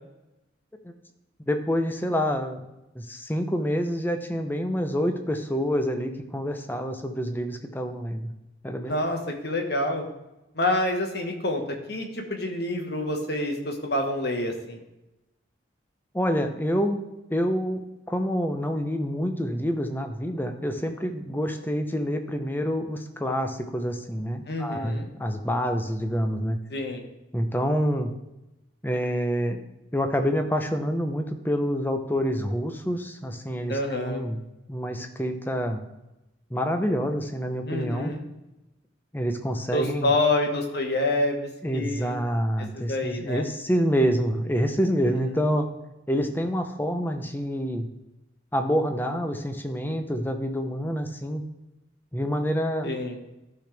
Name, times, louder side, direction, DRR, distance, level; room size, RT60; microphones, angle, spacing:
voice 1, 1.5-2.6 3.0-8.3 8.6-9.0 16.1-17.0 17.3-26.6 27.3-28.1 28.8-29.6 29.9-34.4 34.7-35.8 36.5-38.1 39.1-40.1 41.6-45.7 46.1-47.9 48.5-51.4 52.1-52.9, equal, 10° left, 6 dB, 0.8 m, -27 dB
voice 2, 8.8-10.0 10.5-11.6 11.9-14.8 24.5-25.1 26.7-27.0 33.7-34.3 37.6-38.2 39.7-42.2 42.7-43.5 45.0-45.2 52.8-53.2, left 2 dB, 55° left, 3 dB, 1.6 m, -27 dB
13.5 x 6.0 x 3.4 m, 0.95 s
head